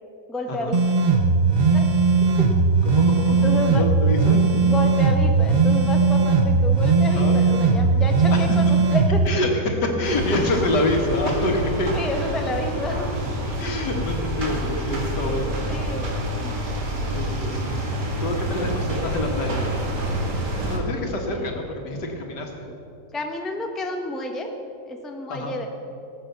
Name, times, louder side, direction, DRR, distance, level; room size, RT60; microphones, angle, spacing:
voice 1, 0.3-0.8 1.7-1.9 2.2-2.5 3.4-3.8 4.6-9.2 11.9-13.1 15.4-16.6 21.2-21.5 23.1-24.5 24.8-25.7, left 1 dB, ahead, 3 dB, 0.8 m, -30 dB
sound 1, 0.7-9.3, right 4 dB, 50° right, 0.5 m, -18 dB
voice 2, 2.8-3.5 3.7-4.4 7.1-7.4 8.3-8.4 9.3-11.9 13.6-15.6 17.1-17.7 18.2-19.6 20.7-22.7 25.3-25.5, left 1 dB, 80° left, 2 dB, 2.3 m, -26 dB
sound 2, 10.0-20.8, right 1 dB, 75° right, 2.5 m, -27 dB
18.5 x 7.9 x 6.8 m, 2.7 s
omnidirectional pair, 1.8 m